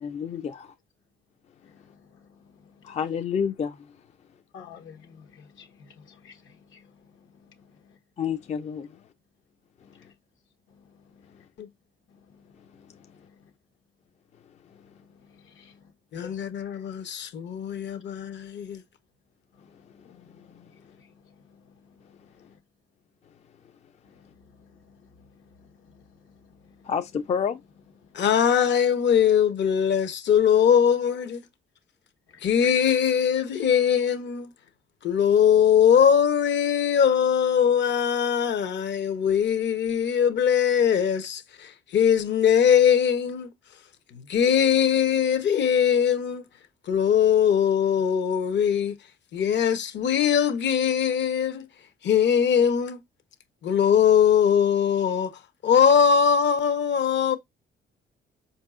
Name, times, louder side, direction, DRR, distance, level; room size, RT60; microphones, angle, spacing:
voice 1, 0.0-0.7 2.8-4.0 8.2-9.0 26.8-27.6, left 7 dB, 35° left, 0.4 m, -29 dB
voice 2, 1.6-2.3 2.6-2.7 4.5-6.9 7.5-7.6 9.9-10.1 10.7-11.4 12.4-12.5 12.9-13.3 14.7-15.8 16.2-16.4 17.9-18.0 19.9-22.2 24.1-24.2 24.9-25.1 25.4-26.0 26.5-26.9, left 7 dB, 80° left, 1.1 m, -52 dB
voice 3, 16.1-18.8 28.1-31.4 32.4-34.5 35.0-43.5 44.1-46.4 46.9-49.0 49.3-51.7 52.0-53.0 53.6-57.4, left 8 dB, 65° left, 0.8 m, -21 dB
4.7 x 2.7 x 2.4 m
cardioid pair, 90°, 20 cm